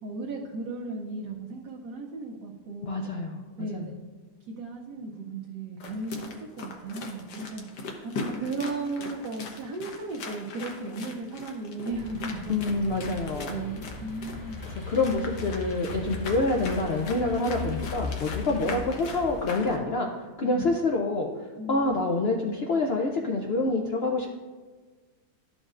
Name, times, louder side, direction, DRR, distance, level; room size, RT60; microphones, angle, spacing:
voice 1, 0.0-3.1 3.6-3.9 4.5-12.6 13.3-14.6 16.0-16.2 17.4-17.9 18.5-18.8 20.4-20.7 21.6-22.0, right 3 dB, 85° right, -2 dB, 1.3 m, -36 dB
voice 2, 2.8-3.4 3.7-3.9 12.5-13.7 14.7-20.1 20.4-24.4, left 3 dB, 70° left, 1 dB, 0.6 m, -27 dB
sound 1, 5.8-19.8, left 3 dB, 90° left, 1.5 m, -40 dB
sound 2, 11.9-19.4, left 2 dB, 20° left, 0.6 m, -38 dB
12.5 x 5.2 x 2.4 m, 1.4 s
omnidirectional pair, 1.7 m